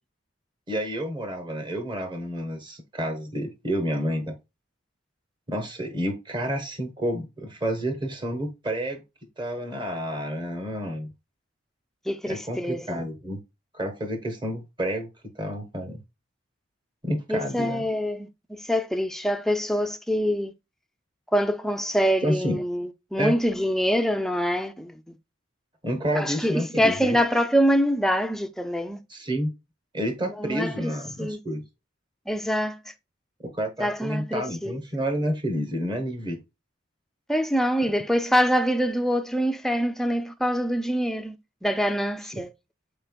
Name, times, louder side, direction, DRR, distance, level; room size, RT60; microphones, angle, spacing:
voice 1, 0.7-4.4 5.5-9.0 9.4-11.1 12.3-13.4 13.7-15.1 15.3-16.0 17.0-17.9 22.2-22.6 23.2-23.3 25.8-27.2 29.1-29.5 29.9-31.6 33.4-36.4, equal, 25° right, 1.1 m, -29 dB
voice 2, 12.1-13.0 17.3-20.5 21.3-25.2 26.1-29.0 30.2-30.9 31.2-31.4 32.3-32.9 33.8-34.8 37.3-41.4 41.6-42.5, equal, ahead, 0.4 m, -25 dB
5.4 x 4.3 x 2.2 m
head